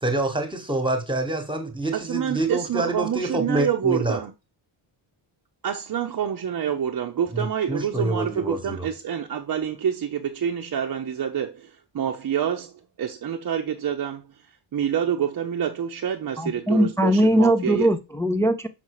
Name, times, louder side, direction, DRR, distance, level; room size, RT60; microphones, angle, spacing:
voice 1, 0.0-4.2 7.3-8.9, right 2 dB, 10° right, 1.2 m, -26 dB
voice 2, 1.9-4.3 5.6-14.2 14.7-17.9, right 8 dB, 45° right, 0.7 m, -27 dB
voice 3, 16.4-18.7, equal, 5° left, 0.4 m, -20 dB
5.9 x 5.6 x 4.8 m
wide cardioid pair, 175°, 48 cm